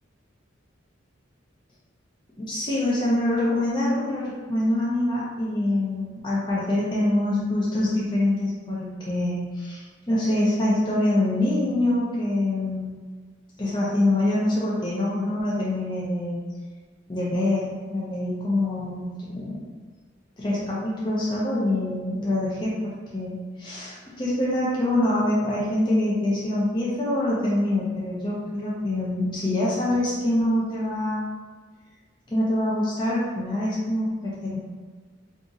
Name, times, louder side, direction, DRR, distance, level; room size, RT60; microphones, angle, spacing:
voice 1, 2.4-12.9 13.6-16.4 17.1-19.6 20.4-31.2 32.3-34.6, left 1 dB, 20° left, -7 dB, 0.5 m, -25 dB
2.5 x 2.4 x 3.9 m, 1.5 s
head